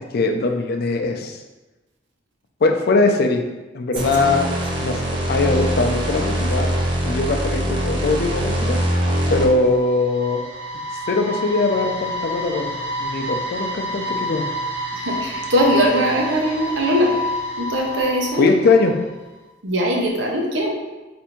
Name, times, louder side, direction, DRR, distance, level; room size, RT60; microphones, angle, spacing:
voice 1, 0.1-1.4 2.6-3.4 3.7-4.4 4.8-5.0 5.3-6.8 7.0-8.8 9.3-10.4 11.1-14.5 18.4-19.0, left 3 dB, 55° left, 4 dB, 0.4 m, -20 dB
sound 1, 4.0-9.7, equal, 30° right, 0.7 m, -23 dB
sound 2, 9.3-19.1, equal, 65° right, 1.4 m, -29 dB
voice 2, 14.9-17.1 17.6-18.5 19.6-20.7, equal, 85° right, 0 dB, 0.8 m, -20 dB
3.4 x 2.6 x 4.3 m, 1.1 s
head